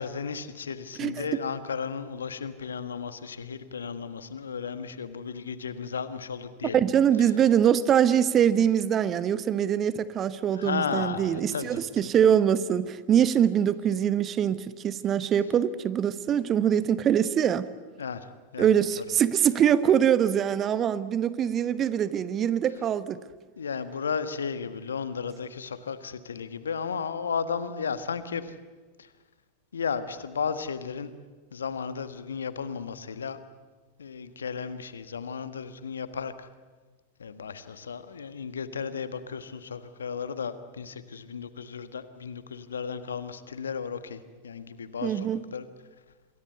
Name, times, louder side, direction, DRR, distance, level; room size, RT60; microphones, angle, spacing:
voice 1, 0.0-6.8 10.5-11.8 18.0-18.3 18.5-18.7 23.6-28.5 29.7-31.1 31.5-33.4 34.0-36.5 37.2-45.7, left 6 dB, 70° left, 12 dB, 1.4 m, -34 dB
voice 2, 6.7-17.7 18.6-23.2 45.0-45.5, right 9 dB, 30° right, 15 dB, 1.0 m, -23 dB
27.5 x 22.0 x 8.1 m, 1.4 s
figure-of-eight pair, 90°, 0 cm